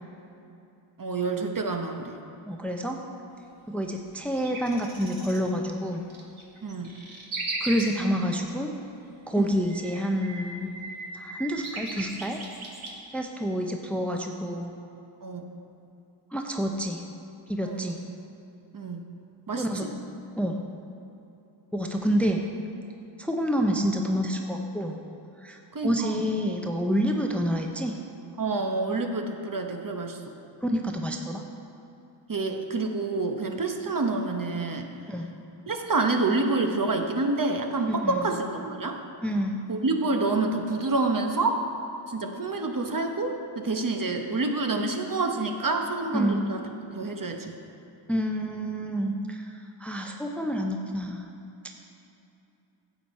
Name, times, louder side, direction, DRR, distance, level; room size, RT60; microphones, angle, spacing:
voice 1, 1.0-2.1 6.6-6.9 9.4-9.6 15.2-15.6 17.6-18.0 18.7-19.1 19.5-19.9 25.7-26.2 28.4-30.2 32.3-34.9 35.7-39.0 39.7-41.6 42.1-47.5, right 3 dB, 40° right, 4 dB, 0.9 m, -28 dB
voice 2, 2.4-3.0 3.7-6.0 7.6-8.7 9.3-10.7 11.1-12.4 13.1-14.7 16.3-17.0 17.5-18.0 19.6-19.9 20.4-20.6 21.7-22.4 23.2-25.0 25.4-28.0 30.6-31.4 35.1-35.3 37.9-38.3 39.2-39.6 46.1-46.4 48.1-51.3, equal, 5° left, 2 dB, 0.7 m, -28 dB
sound 1, 4.1-5.4 5.9-7.9 9.4-12.9, right 2 dB, 70° right, 1.6 m, -37 dB
10.0 x 7.1 x 4.2 m, 2.8 s
cardioid pair, 50°, 50 cm